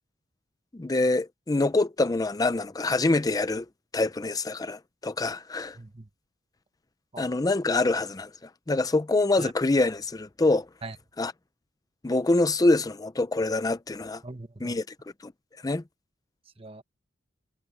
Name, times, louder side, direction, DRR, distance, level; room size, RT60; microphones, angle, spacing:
voice 1, 0.7-3.7 3.9-5.8 7.2-10.7 11.2-11.3 12.0-14.2 14.6-14.9 15.2-15.3 15.6-15.8, left 2 dB, 20° left, 0.5 m, -25 dB
voice 2, 5.8-6.1 7.1-7.3 9.4-9.5 10.8-11.0 14.2-14.8 16.6-16.8, right 2 dB, 30° right, 1.1 m, -41 dB
head